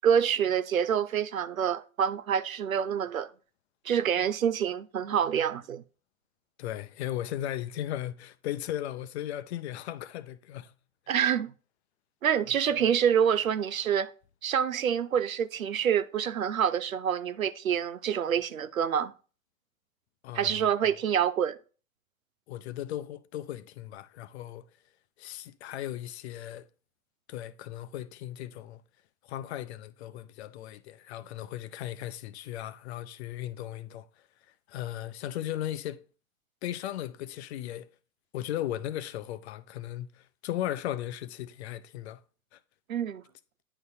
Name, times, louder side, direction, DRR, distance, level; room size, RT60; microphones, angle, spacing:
voice 1, 0.0-3.3 3.8-5.8 11.1-11.5 12.2-14.1 14.4-19.1 20.3-21.6 42.9-43.2, right 8 dB, 80° right, 0.6 m, -27 dB
voice 2, 6.6-10.7 20.2-21.0 22.5-24.6 25.2-26.7 27.3-28.8 29.2-34.3 34.7-36.1 36.6-37.9 38.3-42.2 42.5-42.6, left 12 dB, 50° left, 0.6 m, -37 dB
9.8 x 3.9 x 2.7 m
figure-of-eight pair, 95°, 41 cm